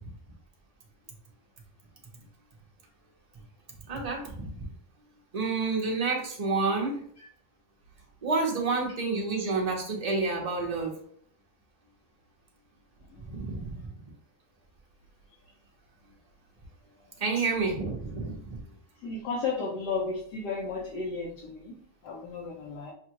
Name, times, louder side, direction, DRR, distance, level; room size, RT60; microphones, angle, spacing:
voice 1, 3.9-4.5 5.3-7.0 8.2-11.0 13.3-13.7 17.2-18.6, right 3 dB, 35° right, -1 dB, 0.7 m, -29 dB
voice 2, 13.1-13.9 17.4-17.5 19.0-21.7 22.0-22.9, left 4 dB, 80° left, -3 dB, 1.3 m, -34 dB
5.9 x 2.4 x 2.9 m, 0.62 s
omnidirectional pair, 1.8 m